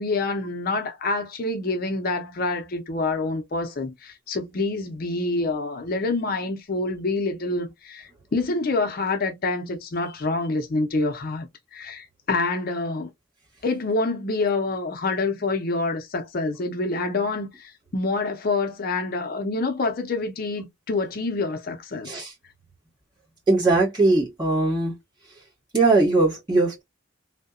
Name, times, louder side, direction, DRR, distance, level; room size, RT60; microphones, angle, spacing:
voice 1, 0.0-13.1 13.6-22.1, left 3 dB, 45° left, 0.5 m, -27 dB
voice 2, 23.5-24.9 25.7-26.8, right 2 dB, 20° right, 1.3 m, -20 dB
2.7 x 2.1 x 2.4 m
head